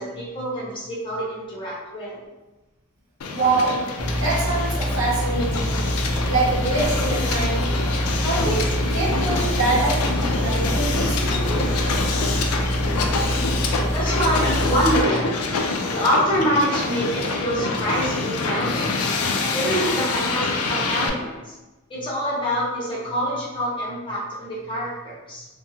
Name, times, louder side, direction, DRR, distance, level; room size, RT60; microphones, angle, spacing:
voice 1, 0.0-2.2 13.9-15.3 15.9-18.9 19.5-21.5 21.9-25.5, equal, 25° left, -7 dB, 0.8 m, -25 dB
Hiss, 3.2-21.1, left 3 dB, 75° left, 0.3 m, -26 dB
voice 2, 3.3-3.8 4.2-5.8 6.3-7.7 8.2-10.0 10.4-11.7, right 2 dB, 60° right, -6 dB, 0.9 m, -25 dB
sound 1, 4.0-15.0, equal, 25° right, 0.6 m, -25 dB
2.6 x 2.2 x 2.7 m, 1.1 s
head